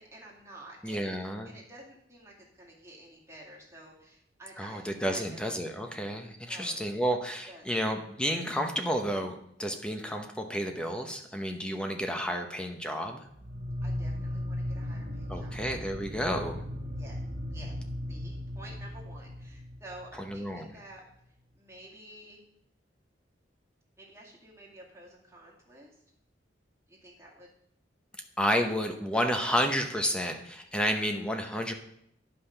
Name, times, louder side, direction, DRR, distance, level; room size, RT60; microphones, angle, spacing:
voice 1, 0.0-1.0 1.4-5.4 6.4-6.8 7.5-7.9 13.8-15.6 17.0-17.2 17.5-17.7 18.1-21.0 21.5-22.4 24.0-26.0 26.9-27.5, right 1 dB, 15° right, -4 dB, 2.3 m, -51 dB
voice 2, 0.8-1.5 4.6-13.2 15.3-16.6 20.3-20.7 28.4-31.7, equal, 5° left, 4 dB, 0.8 m, -31 dB
sound 1, 13.3-20.6, left 1 dB, 50° right, 1.1 m, -37 dB
10.0 x 5.6 x 5.7 m, 0.72 s
head